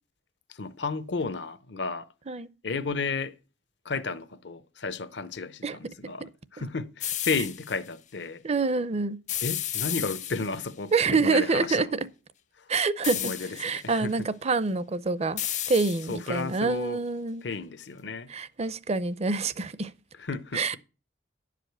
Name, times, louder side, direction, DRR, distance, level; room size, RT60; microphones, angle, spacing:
voice 1, 0.5-2.1 2.6-3.3 3.8-8.4 9.4-12.1 12.6-12.7 13.1-14.3 16.1-17.0 17.4-18.3 20.2-20.8, left 4 dB, 70° left, 0.8 m, -33 dB
sound 1, 7.0-7.8 9.3-10.7 13.0-13.8 15.4-16.4, left 11 dB, 40° left, 0.6 m, -33 dB
voice 2, 8.4-9.2 10.9-11.9 12.7-13.3 13.6-15.4 15.7-17.4 18.3-19.9 20.5-20.8, right 4 dB, 35° right, 0.6 m, -26 dB
11.5 x 5.1 x 7.9 m
head